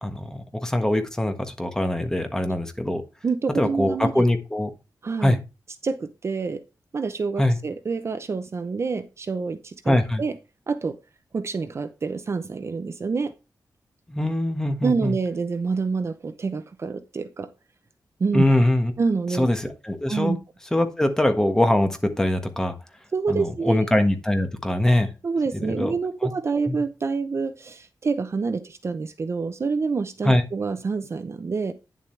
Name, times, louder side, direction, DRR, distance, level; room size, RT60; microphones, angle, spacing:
voice 1, 0.0-3.0 3.5-4.7 5.2-5.4 7.4-7.6 9.9-10.2 14.1-15.2 18.3-18.9 19.4-20.4 20.7-22.7 23.3-25.1 25.5-25.9 26.2-26.3 26.7-26.8 30.2-30.4, left 1 dB, 10° left, 6 dB, 1.4 m, -22 dB
voice 2, 3.2-4.2 5.0-5.4 5.8-6.6 6.9-10.3 10.7-11.0 11.3-13.3 14.8-17.5 18.2-18.4 19.0-19.5 20.1-20.4 23.1-23.9 25.2-31.7, right 4 dB, 40° right, 11 dB, 0.7 m, -27 dB
9.9 x 7.3 x 3.3 m, 0.28 s
wide cardioid pair, 175°, 7 cm